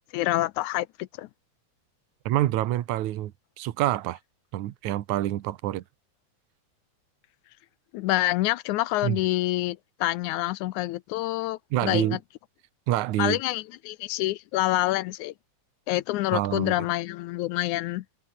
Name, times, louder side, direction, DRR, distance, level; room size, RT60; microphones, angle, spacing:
voice 1, 0.1-1.3 7.9-12.2 13.2-15.3 15.9-18.1, left 17 dB, 80° left, 2.1 m, -27 dB
voice 2, 2.3-4.2 4.5-5.8 9.0-9.2 11.7-12.2 12.9-13.4 16.3-16.7, right 14 dB, 75° right, 2.4 m, -27 dB
omnidirectional pair, 3.4 m